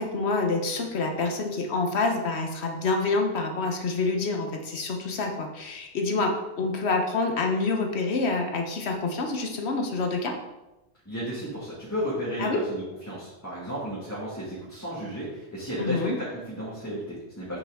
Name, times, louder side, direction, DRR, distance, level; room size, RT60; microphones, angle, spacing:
voice 1, 0.0-10.3 12.4-12.6 15.8-16.2, left 3 dB, 75° left, 3 dB, 1.2 m, -27 dB
voice 2, 11.1-17.6, equal, 15° left, -10 dB, 2.0 m, -33 dB
6.1 x 5.8 x 3.7 m, 1.0 s
omnidirectional pair, 1.1 m